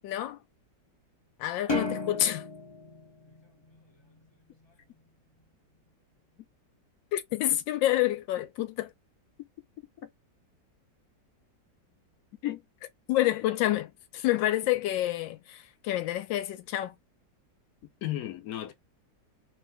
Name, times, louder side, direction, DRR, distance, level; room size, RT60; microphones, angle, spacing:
voice 1, 0.0-0.4 1.4-2.4 7.1-8.7 13.1-16.9, left 14 dB, 85° left, 1.3 m, -28 dB
sound 1, 1.7-4.2, left 3 dB, 40° left, 0.4 m, -34 dB
voice 2, 9.8-10.1 12.4-12.6 18.0-18.7, left 14 dB, 60° left, 1.2 m, -35 dB
3.5 x 2.6 x 3.4 m
omnidirectional pair, 2.0 m